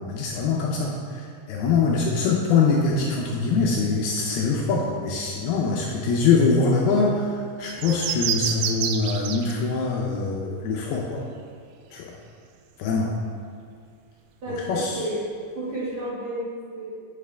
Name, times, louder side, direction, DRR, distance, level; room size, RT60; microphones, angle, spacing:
voice 1, 0.0-11.2 11.9-12.1 12.8-13.1 14.5-15.0, left 4 dB, 80° left, -2 dB, 2.3 m, -23 dB
sound 1, 7.7-9.5 9.8-9.9, right 8 dB, 90° right, 2.9 m, -28 dB
voice 2, 14.4-15.2 15.5-17.0, right 1 dB, 70° right, -11 dB, 1.2 m, -31 dB
9.7 x 5.8 x 3.3 m, 2.2 s
omnidirectional pair, 5.1 m